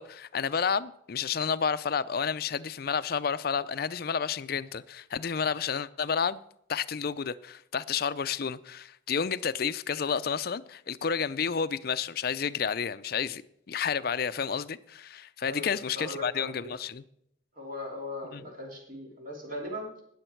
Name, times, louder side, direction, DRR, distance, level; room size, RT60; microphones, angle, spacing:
voice 1, 0.0-6.4 6.7-13.4 13.7-17.0 18.3-18.4, left 6 dB, 50° left, 15 dB, 0.4 m, -30 dB
voice 2, 15.4-16.6 17.5-20.0, left 1 dB, 45° right, 0 dB, 3.5 m, -39 dB
19.0 x 7.2 x 4.5 m, 0.73 s
head